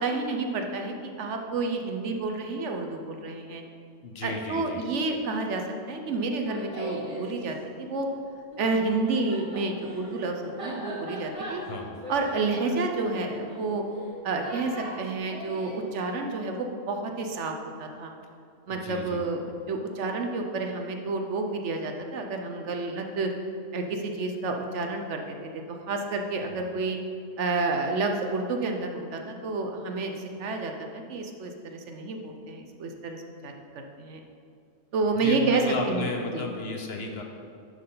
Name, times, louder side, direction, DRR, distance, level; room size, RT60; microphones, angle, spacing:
voice 1, 0.0-3.6 4.2-5.6 5.9-8.1 8.6-11.6 12.1-13.8 14.2-17.5 17.8-18.1 18.7-23.3 23.7-25.4 25.7-27.0 27.4-34.2 34.9-35.6 35.9-36.1 36.3-36.4, right 3 dB, 65° right, 4 dB, 1.1 m, -30 dB
voice 2, 4.0-4.8 11.7-12.0 18.7-19.2 26.4-26.5 35.2-37.2, left 2 dB, 55° left, 2 dB, 1.0 m, -34 dB
Laughter, 6.2-7.3 8.5-15.8, right 1 dB, 25° right, 1.4 m, -39 dB
10.5 x 6.1 x 3.8 m, 2.4 s
omnidirectional pair, 1.3 m